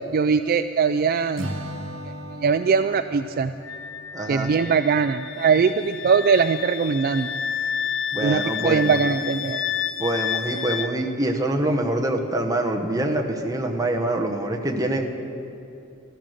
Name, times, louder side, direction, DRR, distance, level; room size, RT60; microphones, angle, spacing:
voice 1, 0.1-1.6 2.1-2.2 2.4-3.5 4.3-7.4 8.2-9.6, right 5 dB, 45° right, 10 dB, 0.3 m, -21 dB
Acoustic guitar / Strum, 1.4-4.6, equal, 75° right, 1.6 m, -37 dB
Wind instrument woodwind instrument, 3.6-10.9, left 8 dB, 65° left, 0.6 m, -30 dB
voice 2, 4.1-4.5 8.1-9.1 10.0-15.1, right 1 dB, 15° right, 2 dB, 1.1 m, -25 dB
14.5 x 13.0 x 6.5 m, 2.7 s
head